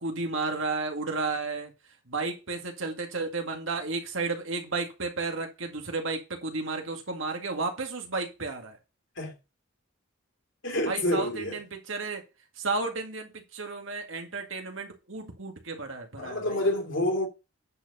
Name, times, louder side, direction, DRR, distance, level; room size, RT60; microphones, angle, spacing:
voice 1, 0.0-1.7 2.1-8.8 10.8-12.2 12.6-16.6, right 3 dB, 70° right, 2.1 m, -33 dB
voice 2, 10.6-11.6 16.2-17.3, left 1 dB, 65° left, 2.8 m, -28 dB
9.9 x 4.5 x 5.4 m
head